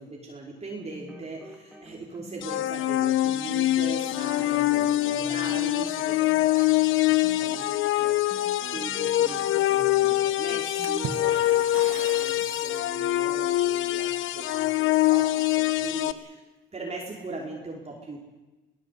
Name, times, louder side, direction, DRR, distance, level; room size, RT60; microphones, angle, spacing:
voice 1, 0.0-8.4 8.7-16.4 16.7-18.2, right 3 dB, 30° right, -2 dB, 5.1 m, -40 dB
sound 1, 0.8-10.2 10.5-11.5, equal, 5° right, 4.4 m, -47 dB
sound 2, 2.4-16.1, left 15 dB, 85° left, 1.1 m, -24 dB
Water / Splash splatter, 10.8-12.9, right 8 dB, 80° right, 1.9 m, -39 dB
23.0 x 18.0 x 8.6 m, 1.1 s
cardioid pair, 90°, 20 cm